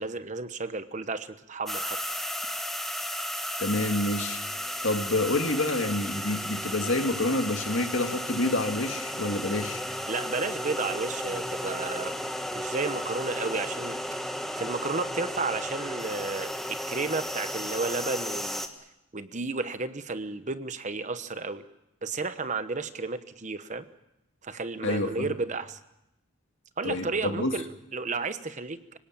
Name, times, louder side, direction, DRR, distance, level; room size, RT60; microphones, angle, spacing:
voice 1, 0.0-2.0 10.1-12.2 12.5-14.2 14.5-18.6 19.1-21.6 22.0-23.9 24.4-25.8 26.8-29.0, right 3 dB, 35° right, 11 dB, 1.0 m, -32 dB
sound 1, 1.7-18.7, equal, ahead, 1.5 m, -34 dB
voice 2, 3.6-4.4 4.8-9.8 24.8-25.3 26.8-27.5, left 2 dB, 65° left, 5 dB, 2.2 m, -28 dB
25.5 x 17.5 x 8.9 m, 0.88 s
head